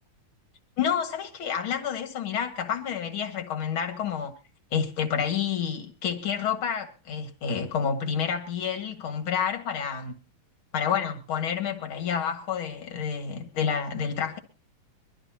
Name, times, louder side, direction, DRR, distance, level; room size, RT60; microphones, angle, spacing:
voice 1, 0.8-4.3 4.7-10.1 10.7-14.4, left 7 dB, 45° left, 2.3 m, -29 dB
23.5 x 13.0 x 2.9 m
omnidirectional pair, 3.9 m